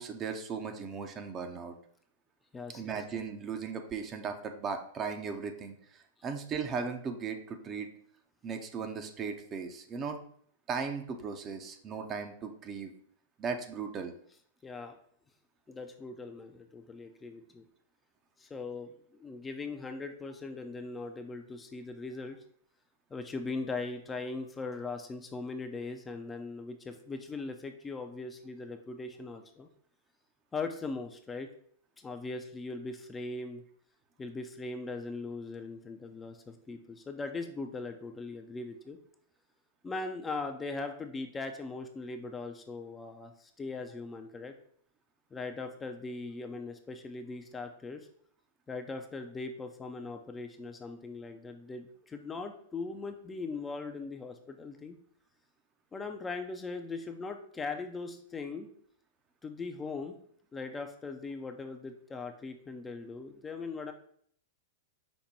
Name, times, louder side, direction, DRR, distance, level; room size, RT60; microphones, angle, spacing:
voice 1, 0.0-1.7 2.7-7.9 8.4-10.2 10.7-12.9 13.4-14.1, right 5 dB, 30° right, 6 dB, 0.6 m, -37 dB
voice 2, 2.5-3.0 14.6-14.9 15.7-17.6 18.4-22.4 23.1-29.7 30.5-31.5 32.0-33.6 34.2-39.0 39.8-44.5 45.3-48.1 48.7-55.0 55.9-58.7 59.4-60.2 60.5-63.9, left 3 dB, 15° left, 5 dB, 0.5 m, -40 dB
5.3 x 2.2 x 4.2 m, 0.62 s
hypercardioid pair, 110°, 0 cm